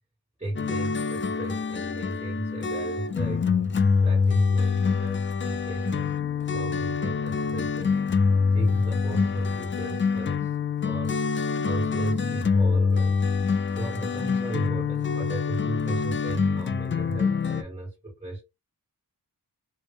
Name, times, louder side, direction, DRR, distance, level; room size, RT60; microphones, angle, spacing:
voice 1, 0.4-3.5 4.0-6.2 6.5-8.0 8.5-10.6 10.8-11.3 11.6-13.3 13.8-18.4, right 1 dB, 20° right, 1.6 m, -34 dB
sound 1, 0.6-17.6, left 5 dB, 30° left, 0.4 m, -25 dB
3.3 x 2.7 x 3.1 m
wide cardioid pair, 90°, 38 cm